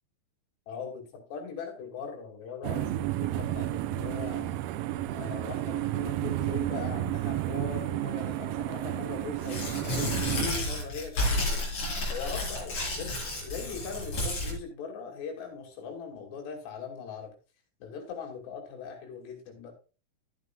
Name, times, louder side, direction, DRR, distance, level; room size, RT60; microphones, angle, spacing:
voice 1, 0.7-4.6 5.1-11.6 12.1-17.4 17.8-19.7, left 6 dB, 80° left, 2 dB, 4.5 m, -40 dB
sound 1, 2.6-10.5, right 14 dB, 85° right, 2.1 m, -31 dB
Tearing, 9.4-14.5, left 1 dB, 45° left, 4.9 m, -31 dB
13.5 x 8.2 x 2.4 m, 0.34 s
omnidirectional pair, 4.8 m